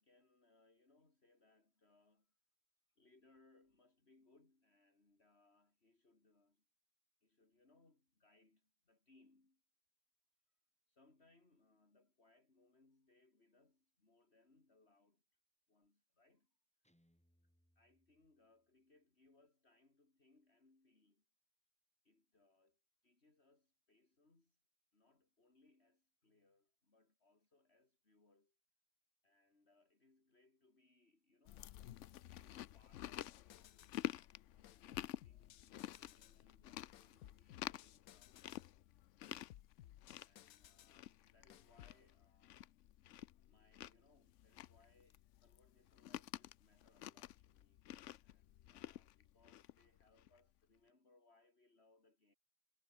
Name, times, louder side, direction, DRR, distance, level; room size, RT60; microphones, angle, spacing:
voice 1, 0.0-2.4 3.0-6.6 7.2-9.6 10.9-15.4 15.7-16.6 17.8-21.2 22.0-24.6 24.9-28.6 29.2-31.8 32.2-34.1 34.5-38.8 40.2-42.7 43.5-47.9 48.1-52.3, left 2 dB, 45° left, 3.9 m, -73 dB
Guitar, 16.8-18.9, equal, 5° left, 5.6 m, -79 dB
Chewing mastication, 31.5-50.4, left 13 dB, 65° left, 0.9 m, -51 dB
sound 1, 32.9-34.1 34.6-36.4 36.9-38.7 39.2-41.0 41.5-42.0, left 12 dB, 80° left, 1.2 m, -61 dB
omnidirectional pair, 1.5 m